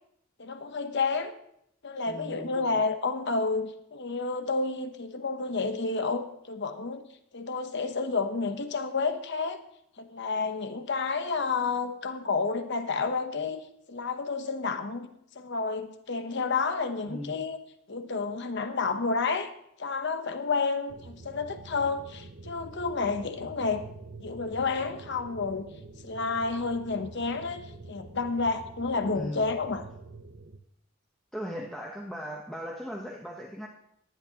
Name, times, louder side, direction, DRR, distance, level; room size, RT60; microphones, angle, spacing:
voice 1, 0.4-1.3 1.8-7.0 7.3-9.6 10.0-15.1 15.3-17.6 17.9-19.5 19.8-23.8 24.2-25.7 26.0-29.8, left 4 dB, 55° left, 8 dB, 0.9 m, -30 dB
voice 2, 2.1-2.8 17.0-17.4 29.1-29.5 31.3-33.7, equal, ahead, -2 dB, 0.9 m, -38 dB
sound 1, 20.9-30.6, right 3 dB, 50° right, 0.7 m, -47 dB
18.0 x 10.5 x 2.9 m, 0.74 s
head